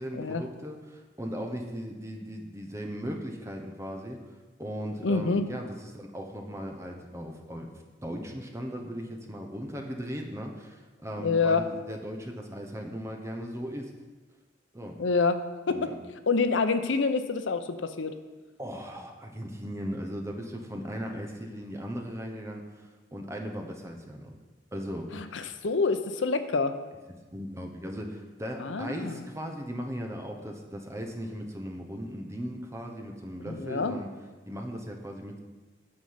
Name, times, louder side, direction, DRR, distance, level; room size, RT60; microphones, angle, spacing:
voice 1, 0.0-4.2 4.6-7.7 8.0-13.9 14.7-15.0 15.7-15.9 18.6-24.4 24.7-25.5 27.3-34.1 34.4-35.4, equal, 15° right, 3 dB, 1.0 m, -37 dB
voice 2, 5.0-5.5 11.2-11.6 15.0-15.4 15.7-15.9 16.3-18.1 25.1-26.7 28.6-29.2 33.4-34.0, left 4 dB, 90° left, 10 dB, 0.7 m, -27 dB
9.3 x 6.4 x 5.7 m, 1.3 s
head